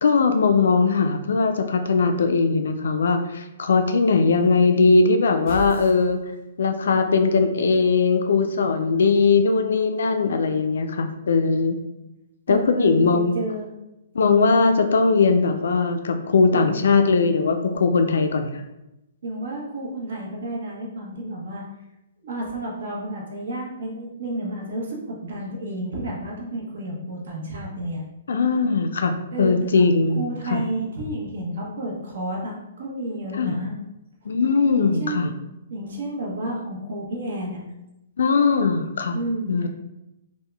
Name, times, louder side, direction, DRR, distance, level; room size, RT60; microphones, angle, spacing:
voice 1, 0.0-6.2 6.6-11.8 12.5-13.3 14.1-18.5 28.3-30.6 33.3-33.6 34.3-35.3 38.2-39.2 39.5-39.7, left 4 dB, 70° left, 6 dB, 0.4 m, -20 dB
sound 1, 5.5-6.7, right 1 dB, 15° right, 1.5 m, -35 dB
voice 2, 12.5-13.7 16.5-17.0 19.2-21.6 22.2-28.0 29.3-29.8 30.2-33.8 34.7-35.3 35.7-37.6 39.1-39.5, right 1 dB, 60° right, -2 dB, 1.0 m, -31 dB
3.6 x 2.2 x 3.3 m, 0.93 s
hypercardioid pair, 175°, 0 cm